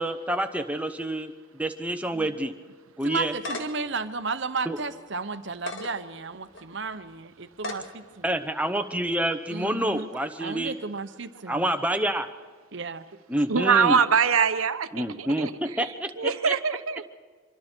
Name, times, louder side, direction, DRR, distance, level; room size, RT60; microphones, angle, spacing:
voice 1, 0.0-1.3 1.6-2.5 3.0-3.3 4.7-4.8 8.2-10.8 11.5-12.3 13.3-14.0 14.9-16.3, right 1 dB, 5° right, 6 dB, 0.9 m, -27 dB
voice 2, 3.0-8.3 9.5-10.1 10.4-11.7 12.7-13.0, right 4 dB, 55° right, 11 dB, 0.9 m, -34 dB
sound 1, 3.2-3.9 4.4-4.5 5.5-5.9 6.5-6.7 7.6-7.9, left 1 dB, 65° left, 2.1 m, -35 dB
voice 3, 13.5-17.1, right 6 dB, 80° right, 11 dB, 1.0 m, -24 dB
25.5 x 23.0 x 4.5 m, 1.5 s
head